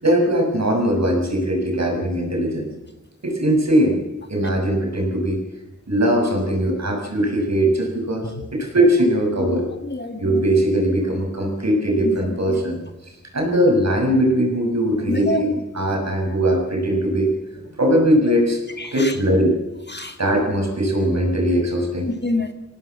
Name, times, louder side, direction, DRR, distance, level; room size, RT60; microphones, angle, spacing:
voice 1, 0.0-2.7 3.2-4.0 4.3-5.4 5.9-9.6 10.2-12.8 13.3-17.3 17.8-18.6 18.9-19.5 20.2-22.1, right 1 dB, 65° right, 1 dB, 6.8 m, -20 dB
voice 2, 9.4-10.5 12.0-12.2 12.5-12.6 15.1-15.4 18.8-19.1 19.9-20.2 22.1-22.5, left 2 dB, 35° left, 7 dB, 1.9 m, -27 dB
25.5 x 17.5 x 7.4 m, 1.0 s
wide cardioid pair, 80°, 30 cm